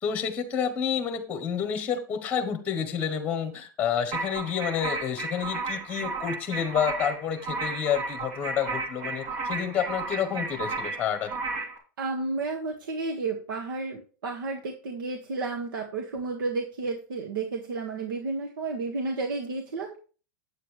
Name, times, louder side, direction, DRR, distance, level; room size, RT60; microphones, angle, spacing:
voice 1, 0.0-11.4, left 8 dB, 15° left, 8 dB, 1.1 m, -29 dB
sound 1, 4.1-11.8, right 3 dB, 55° right, 3.0 m, -33 dB
voice 2, 12.0-20.0, right 3 dB, 90° right, 3 dB, 1.7 m, -32 dB
9.3 x 8.2 x 3.3 m, 0.37 s
supercardioid pair, 160°, 11 cm